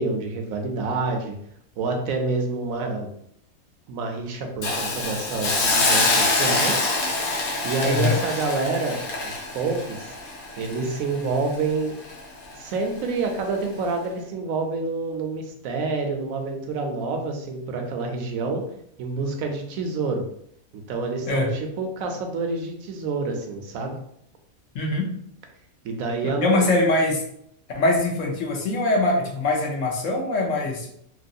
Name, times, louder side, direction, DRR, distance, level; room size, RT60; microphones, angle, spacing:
voice 1, 0.0-1.4 1.8-3.1 3.9-6.9 7.6-10.2 10.6-12.0 12.6-18.6 19.0-20.2 20.9-24.0 25.8-26.7, right 3 dB, 80° right, 3 dB, 1.0 m, -28 dB
Hiss, 4.6-11.7 12.0-12.2, left 2 dB, 90° left, 1.2 m, -25 dB
voice 2, 7.8-8.2 21.3-21.5 24.7-25.1 26.4-27.2 27.7-30.9, left 2 dB, 65° left, 0 dB, 1.1 m, -22 dB
3.1 x 2.8 x 2.6 m, 0.71 s
omnidirectional pair, 1.4 m